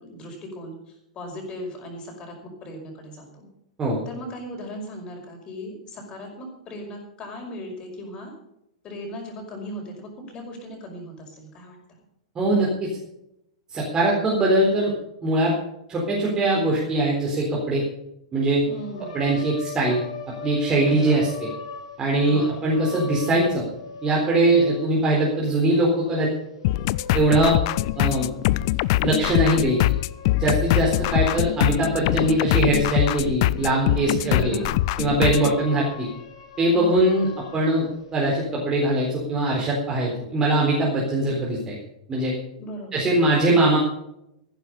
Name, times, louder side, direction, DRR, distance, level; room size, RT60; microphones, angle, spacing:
voice 1, 0.0-3.5 4.1-8.3 8.8-12.0 18.7-19.2 20.9-21.3 22.2-22.7 30.8-31.4 34.1-34.7 36.7-37.2 42.6-43.1 43.5-43.6, equal, 25° left, 2 dB, 5.4 m, -38 dB
voice 2, 12.4-12.9 13.7-14.9 15.2-15.5 15.9-17.8 18.3-18.6 19.1-20.0 20.4-21.3 22.0-23.6 24.0-26.3 27.1-27.5 28.0-28.3 29.0-29.9 30.4-34.6 35.0-36.1 36.6-37.3 37.5-41.8 42.1-42.4 42.9-43.8, right 1 dB, 20° right, -4 dB, 4.0 m, -21 dB
sound 1, 18.7-25.4 26.5-31.7 32.0-38.6, left 6 dB, 60° left, 2.9 m, -40 dB
sound 2, 26.6-35.6, left 17 dB, 45° left, 0.4 m, -23 dB
14.5 x 11.5 x 5.5 m, 0.81 s
figure-of-eight pair, 100°, 3 cm